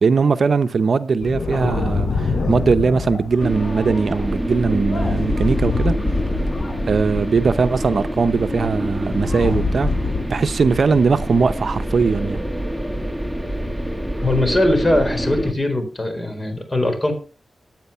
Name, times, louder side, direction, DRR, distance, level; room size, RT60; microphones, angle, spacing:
voice 1, 0.0-6.0 6.9-9.9 10.3-12.4, right 5 dB, 65° right, 0.7 m, -19 dB
sound 1, 1.2-10.2, left 3 dB, 70° left, 4.0 m, -26 dB
sound 2, 3.4-15.5, equal, ahead, 1.6 m, -26 dB
voice 2, 14.2-17.1, left 1 dB, 25° left, 4.3 m, -20 dB
15.5 x 9.1 x 5.7 m
cardioid pair, 70°, 0 cm